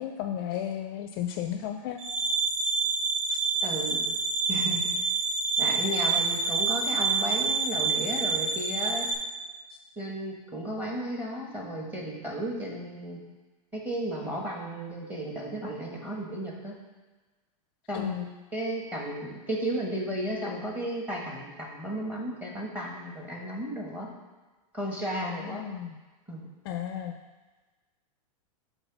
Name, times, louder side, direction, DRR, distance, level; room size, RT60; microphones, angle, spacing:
voice 1, 0.0-2.0 3.3-3.4 17.9-18.2 25.2-26.0 26.7-27.2, left 10 dB, 40° left, 6 dB, 0.4 m, -34 dB
sound 1, 2.0-9.1, right 4 dB, 85° right, 1.8 m, -27 dB
voice 2, 3.6-4.1 4.5-4.8 5.6-9.1 10.0-13.2 13.7-16.7 17.9-18.2 18.5-24.1 24.7-25.6 26.3-26.5, right 1 dB, 10° right, -2 dB, 1.2 m, -34 dB
8.2 x 3.4 x 6.0 m, 1.2 s
supercardioid pair, 165°, 19 cm